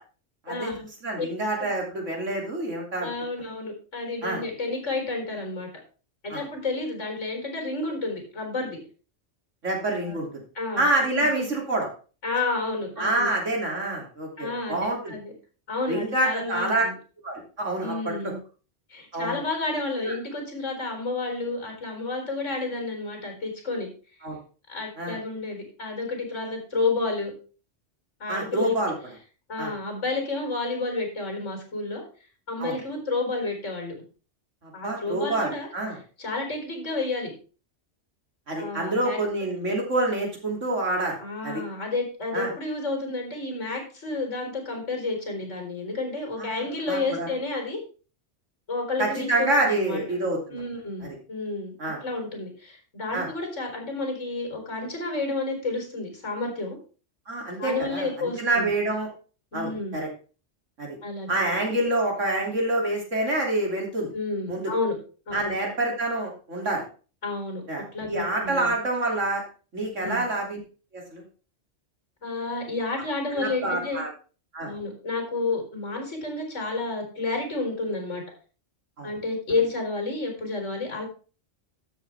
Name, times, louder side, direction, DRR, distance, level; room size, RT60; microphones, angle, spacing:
voice 1, 0.4-3.1 4.2-4.4 6.3-6.4 9.6-10.3 10.8-11.9 13.0-15.2 15.9-16.9 17.2-18.3 19.1-19.4 20.0-20.1 24.2-24.4 25.0-25.2 28.3-28.9 29.6-29.7 32.6-32.8 34.6-36.0 38.5-41.6 42.3-42.5 46.4-46.5 46.8-47.3 49.0-50.6 51.0-51.2 51.8-52.0 53.1-53.3 57.3-59.1 59.5-60.1 60.8-61.0 61.3-64.1 64.5-64.7 65.3-66.8 67.7-69.4 69.7-70.6 70.9-71.2 73.3-74.1 74.5-74.7 79.0-79.1, right 2 dB, 90° right, 0 dB, 3.4 m, -27 dB
voice 2, 3.0-5.7 6.2-8.8 10.0-10.2 10.5-10.9 11.2-11.3 12.2-13.3 14.4-15.3 15.7-16.9 17.8-18.4 18.9-23.9 24.7-27.3 28.2-28.8 29.5-32.0 32.5-33.9 34.7-35.7 36.2-37.3 38.6-39.2 41.2-47.8 48.7-50.0 50.5-51.7 52.0-56.8 57.6-58.7 59.5-60.0 61.0-61.3 64.1-64.9 65.3-65.6 67.2-68.7 70.0-70.3 72.2-74.0 74.6-78.2 79.0-81.0, left 3 dB, 75° left, 2 dB, 4.6 m, -30 dB
13.0 x 7.6 x 3.5 m, 0.36 s
omnidirectional pair, 1.2 m